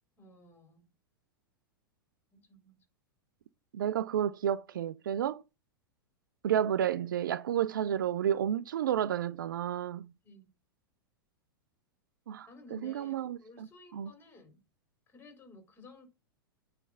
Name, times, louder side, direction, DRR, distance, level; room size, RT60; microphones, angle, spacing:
voice 1, 0.2-0.9 2.3-2.8 10.2-10.5 12.5-13.1 13.4-14.6 15.1-16.1, left 3 dB, 15° left, 3.4 m, -54 dB
voice 2, 3.7-5.4 6.4-10.1 12.3-13.7 13.9-14.1, right 10 dB, 60° right, 0.4 m, -31 dB
9.0 x 3.3 x 5.5 m
figure-of-eight pair, 95°, 12 cm